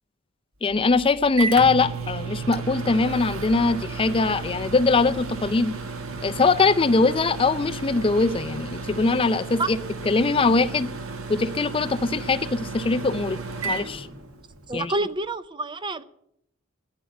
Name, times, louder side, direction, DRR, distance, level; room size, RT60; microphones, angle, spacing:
voice 1, 0.6-5.7 6.2-9.8 10.1-10.9 11.3-13.4 13.6-14.1 14.7-14.9, left 3 dB, 25° left, 0.5 m, -22 dB
Microwave oven, 0.7-14.7, right 4 dB, 80° right, 1.7 m, -34 dB
voice 2, 14.7-16.0, right 2 dB, 20° right, 0.5 m, -28 dB
11.0 x 9.8 x 9.5 m
head